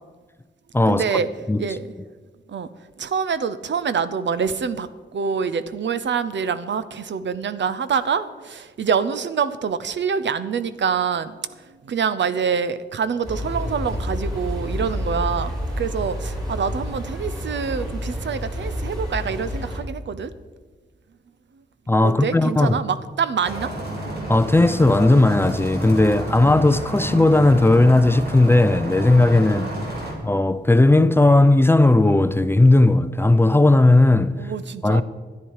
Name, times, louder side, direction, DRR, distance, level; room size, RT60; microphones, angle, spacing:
voice 1, 0.9-1.3 1.6-1.9 2.5-2.7 3.0-20.3 22.0-23.7 29.6-29.8 34.4-35.0, right 6 dB, 75° right, 0.7 m, -26 dB
sound 1, 13.2-19.8, equal, 20° right, 3.8 m, -29 dB
voice 2, 21.9-22.8 24.3-29.7 30.2-34.5 34.8-35.0, left 2 dB, 10° left, 0.4 m, -16 dB
sound 2, 23.4-30.1, right 1 dB, 55° right, 3.3 m, -30 dB
13.5 x 10.5 x 4.8 m
wide cardioid pair, 135°, 19 cm